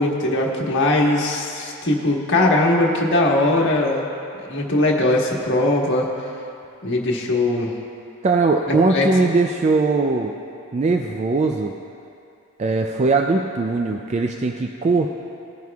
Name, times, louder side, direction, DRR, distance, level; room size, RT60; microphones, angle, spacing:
voice 1, 0.0-4.0 4.5-6.1 6.8-7.7 8.7-9.1, left 2 dB, 55° left, -1 dB, 1.4 m, -20 dB
voice 2, 8.2-10.3 10.7-11.7 12.6-15.1, right 3 dB, 30° right, 3 dB, 0.4 m, -20 dB
18.5 x 9.2 x 2.4 m, 2.7 s
head